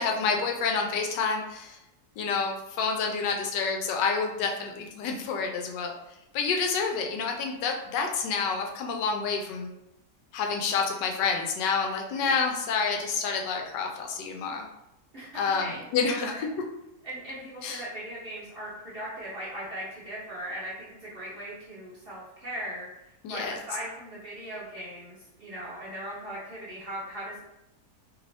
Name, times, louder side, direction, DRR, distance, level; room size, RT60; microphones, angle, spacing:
voice 1, 0.0-1.8 2.2-5.9 6.3-9.7 10.3-14.7 15.3-16.3 17.6-17.8 23.2-23.6, left 5 dB, 85° left, 2 dB, 1.2 m, -28 dB
voice 2, 15.1-16.4 17.0-22.9 23.3-27.4, right 1 dB, 40° right, -7 dB, 0.9 m, -39 dB
3.2 x 3.1 x 2.6 m, 0.88 s
omnidirectional pair, 1.8 m